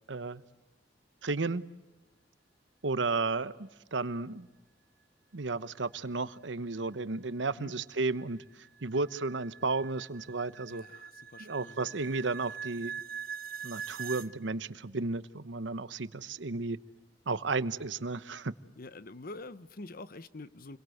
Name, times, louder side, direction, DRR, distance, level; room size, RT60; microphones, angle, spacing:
voice 1, 0.1-0.4 1.2-1.6 2.8-4.5 5.3-10.8 11.4-12.9 13.6-16.8 17.3-18.5, right 3 dB, 80° right, 1.0 m, -33 dB
sound 1, 7.1-14.3, right 7 dB, 50° right, 1.3 m, -43 dB
voice 2, 10.7-11.8 18.8-20.8, left 2 dB, 55° left, 1.0 m, -46 dB
29.5 x 22.5 x 7.9 m
head